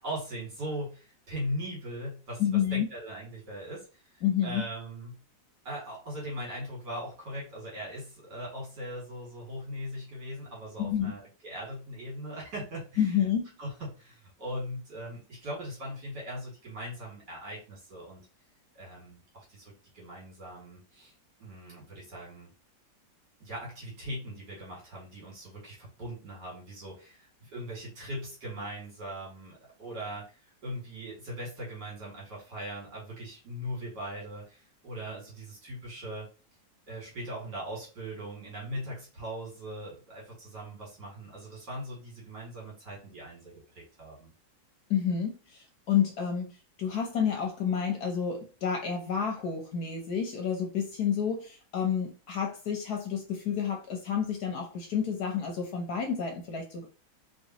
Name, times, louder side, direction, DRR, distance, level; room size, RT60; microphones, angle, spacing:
voice 1, 0.0-5.2 5.6-13.3 13.6-18.2 18.7-21.1 21.4-22.5 23.4-36.3 36.9-44.3, equal, 65° right, 2.7 m, -40 dB
voice 2, 2.4-2.9 4.2-4.6 10.8-11.1 13.0-13.5 44.9-46.5 46.8-56.9, left 8 dB, 60° left, 1.2 m, -29 dB
4.3 x 3.0 x 2.9 m
omnidirectional pair, 2.0 m